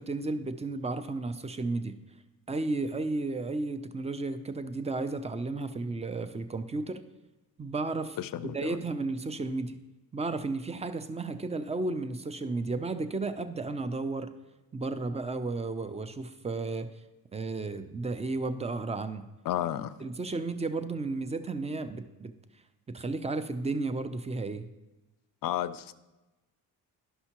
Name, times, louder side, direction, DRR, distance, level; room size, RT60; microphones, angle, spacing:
voice 1, 0.0-2.0 2.5-7.0 7.6-8.2 8.4-9.8 10.1-14.3 14.7-16.9 17.3-19.2 20.0-22.3 22.9-24.7, right 3 dB, 15° right, 11 dB, 0.5 m, -33 dB
voice 2, 8.2-8.8 19.5-20.0 25.4-25.9, left 12 dB, 55° left, 15 dB, 0.5 m, -32 dB
11.0 x 5.5 x 2.9 m, 1.1 s
cardioid pair, 75°, 42 cm